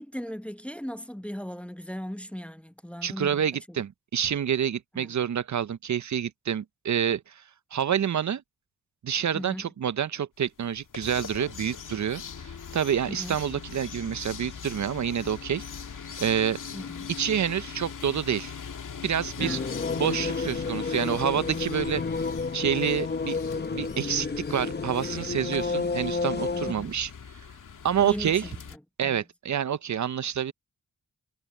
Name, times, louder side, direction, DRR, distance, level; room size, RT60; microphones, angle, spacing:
voice 1, 0.0-3.3 3.7-3.8 4.9-5.1 9.3-9.6 13.1-13.4 16.7-17.1 19.4-19.7 26.7-26.9 28.0-29.2, equal, 5° left, 0.9 m, -38 dB
voice 2, 3.0-7.4 7.7-8.4 9.0-15.6 16.2-16.6 17.1-18.5 19.0-19.6 20.0-22.0 22.5-27.1 27.8-28.5 29.0-30.5, right 8 dB, 60° right, 0.7 m, -28 dB
sound 1, 10.6-28.8, left 6 dB, 70° left, 2.3 m, -41 dB
sound 2, 19.4-26.7, left 4 dB, 30° left, 0.9 m, -31 dB
cardioid pair, 45°, 32 cm